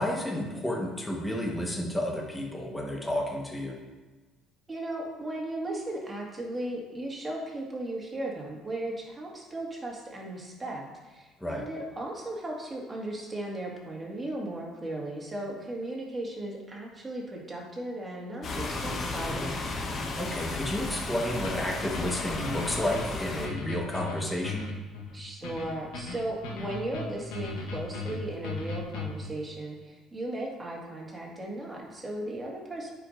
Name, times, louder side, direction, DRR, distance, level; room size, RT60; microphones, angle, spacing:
voice 1, 0.0-3.8 11.4-11.7 20.2-24.7, left 1 dB, 10° left, 0 dB, 1.3 m, -31 dB
voice 2, 4.7-19.6 25.1-32.9, right 1 dB, 25° right, -2 dB, 1.9 m, -36 dB
sound 1, 18.4-23.5, left 3 dB, 50° left, 1.0 m, -34 dB
sound 2, 21.4-29.3, left 3 dB, 85° left, 1.2 m, -37 dB
9.5 x 4.8 x 2.6 m, 1.3 s
supercardioid pair, 80°, 0 cm